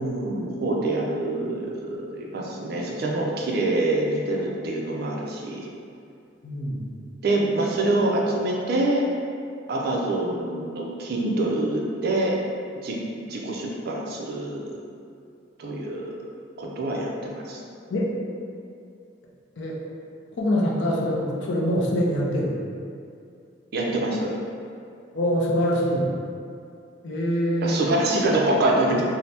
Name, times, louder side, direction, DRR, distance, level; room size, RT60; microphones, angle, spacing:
voice 1, 0.0-5.7 7.2-9.0 9.7-12.4 12.8-13.0 13.3-14.8 15.6-16.1 16.6-17.6 23.7-24.3 27.6-29.0, right 2 dB, 55° right, -2 dB, 0.4 m, -25 dB
voice 2, 6.4-6.9 17.9-18.1 19.6-19.8 20.4-22.6 25.1-26.1 27.0-27.8, equal, 65° left, -2 dB, 0.4 m, -24 dB
2.7 x 2.0 x 3.3 m, 2.4 s
head